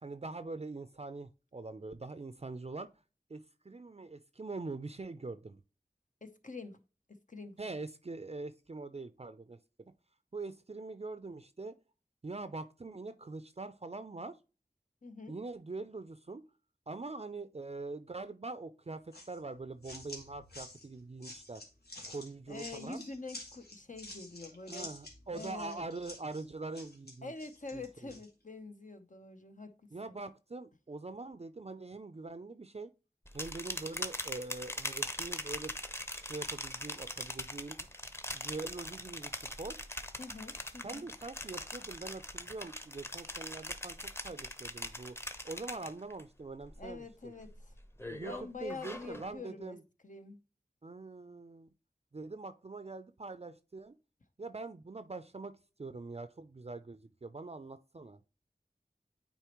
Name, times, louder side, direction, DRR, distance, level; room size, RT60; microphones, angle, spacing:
voice 1, 0.0-2.9 3.3-5.6 7.6-9.9 10.3-11.7 12.2-14.4 15.3-16.4 16.9-21.6 22.1-23.0 24.6-27.3 27.7-28.1 29.9-32.9 33.3-35.7 36.1-37.8 38.3-39.8 40.8-45.2 45.4-47.3 48.1-49.8 50.8-51.7 52.1-53.9 54.4-55.5 55.8-58.2, right 3 dB, 40° right, 0.5 m, -43 dB
voice 2, 6.2-6.8 7.1-7.6 15.0-15.4 22.5-24.9 25.3-25.8 27.2-29.7 30.1-30.2 40.2-41.1 46.8-47.7 48.2-49.8 50.0-50.4, left 3 dB, 55° left, 0.9 m, -46 dB
sound 1, 19.1-28.3, left 2 dB, 80° left, 2.0 m, -50 dB
sound 2, 33.3-46.2 46.6-47.0 47.4-49.3, left 1 dB, 15° left, 0.9 m, -41 dB
9.1 x 4.2 x 3.0 m
wide cardioid pair, 50°, 16 cm